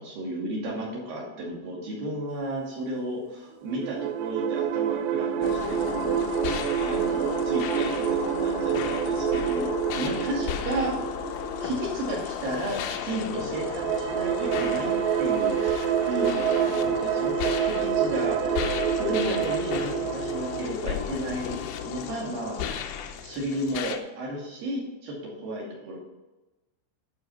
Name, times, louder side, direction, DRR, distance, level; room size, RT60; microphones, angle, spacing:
voice 1, 0.0-6.2 6.8-11.0 11.6-22.9 23.2-26.0, right 1 dB, 55° right, -3 dB, 3.8 m, -33 dB
sound 1, 3.7-12.3 13.3-20.7, right 10 dB, 85° right, 2.5 m, -28 dB
sound 2, 5.4-24.0, left 8 dB, 90° left, 2.1 m, -34 dB
11.0 x 6.4 x 5.5 m, 1.1 s
omnidirectional pair, 5.5 m